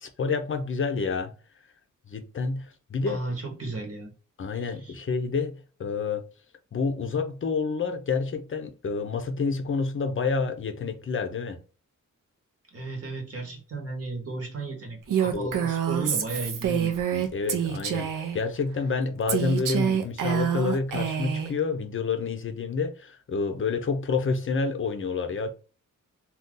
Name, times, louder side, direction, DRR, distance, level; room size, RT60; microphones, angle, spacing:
voice 1, 0.0-1.3 2.1-3.2 4.4-6.2 6.7-11.6 15.3-15.5 17.1-25.5, left 4 dB, 40° left, 0.5 m, -28 dB
voice 2, 3.1-4.1 4.5-5.0 12.7-16.9, right 3 dB, 50° right, 1.0 m, -34 dB
Female speech woman speaking, 15.1-18.4 19.3-21.5, right 8 dB, 80° right, 0.6 m, -27 dB
2.6 x 2.4 x 3.6 m
wide cardioid pair, 115°, 32 cm